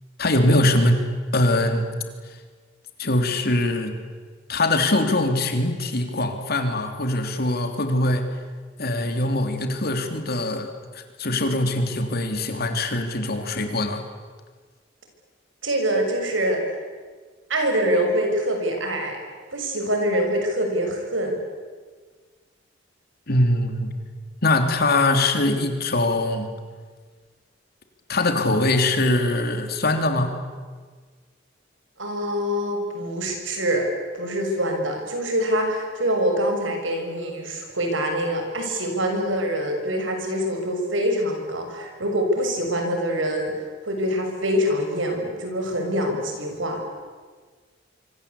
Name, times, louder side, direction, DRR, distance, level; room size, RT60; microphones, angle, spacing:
voice 1, 0.2-1.1 1.3-1.8 3.0-3.9 4.5-8.3 8.8-14.0 23.3-23.9 24.4-26.5 28.1-30.4, left 1 dB, 55° left, 6 dB, 3.3 m, -22 dB
voice 2, 15.6-16.6 17.5-19.2 19.5-21.4 32.0-33.9 34.1-46.8, equal, 80° right, 3 dB, 6.7 m, -25 dB
26.5 x 25.0 x 8.6 m, 1.5 s
head